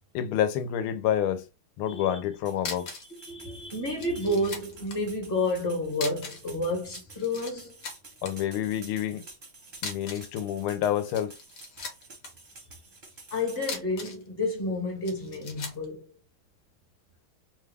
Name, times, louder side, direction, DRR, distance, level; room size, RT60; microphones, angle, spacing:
voice 1, 0.1-1.4 1.8-2.9 8.2-9.3 9.8-11.3, left 10 dB, 80° left, 1.5 m, -28 dB
voice 2, 1.8-2.2 3.2-7.8 13.3-16.1, left 1 dB, 35° left, 1.2 m, -30 dB
sound 1, 2.4-13.7, right 3 dB, 40° right, 0.7 m, -50 dB
sound 2, 2.6-3.1 3.4-3.5 4.0-5.0 5.9-6.5 6.8-7.5 7.8-8.3 9.7-10.4 11.0-12.3 13.6-14.3 15.1-15.9, left 4 dB, 60° left, 1.3 m, -38 dB
3.5 x 2.3 x 3.3 m
omnidirectional pair, 2.4 m